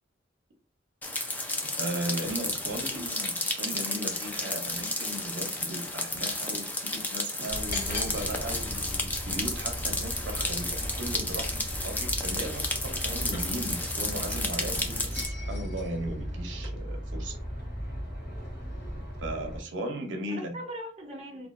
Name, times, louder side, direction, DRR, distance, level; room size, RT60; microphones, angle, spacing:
sound 1, 1.0-15.3, left 2 dB, 10° left, 0.3 m, -32 dB
voice 1, 1.8-17.4 19.2-20.5, right 1 dB, 80° right, 3 dB, 0.6 m, -37 dB
voice 2, 2.3-3.1 14.9-15.1 20.3-21.5, equal, 35° right, -1 dB, 0.6 m, -42 dB
sound 2, 7.5-19.6, equal, 55° left, 0.9 m, -36 dB
2.4 x 2.2 x 2.4 m, 0.40 s
head